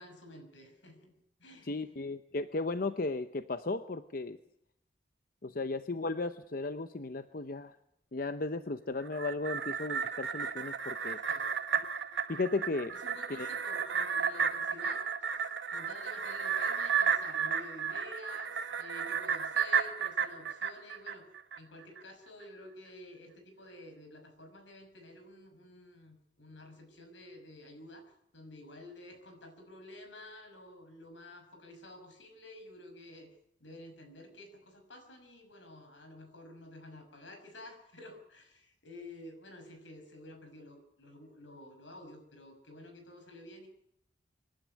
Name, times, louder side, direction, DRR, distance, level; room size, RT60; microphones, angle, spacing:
voice 1, 0.0-2.1 5.5-5.6 11.2-11.6 12.9-15.3 15.7-21.3 21.6-33.3 33.6-43.7, left 1 dB, 85° left, 6 dB, 6.0 m, -51 dB
voice 2, 1.7-4.4 5.4-7.7 8.1-11.2 12.3-12.9 13.3-13.5, left 3 dB, 50° left, 10 dB, 0.8 m, -35 dB
sound 1, 9.0-21.6 22.0-22.1, right 7 dB, 70° right, 1.6 m, -33 dB
25.5 x 12.0 x 9.7 m, 0.75 s
head